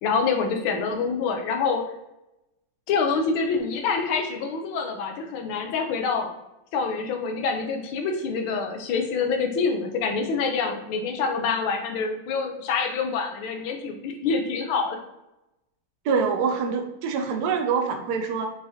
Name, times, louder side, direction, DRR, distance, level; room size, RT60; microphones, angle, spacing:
voice 1, 0.0-1.8 2.9-6.3 6.7-15.0, left 5 dB, 85° left, 3 dB, 1.5 m, -26 dB
voice 2, 16.0-18.5, right 5 dB, 85° right, 4 dB, 0.8 m, -25 dB
5.9 x 3.1 x 2.7 m, 0.91 s
omnidirectional pair, 2.2 m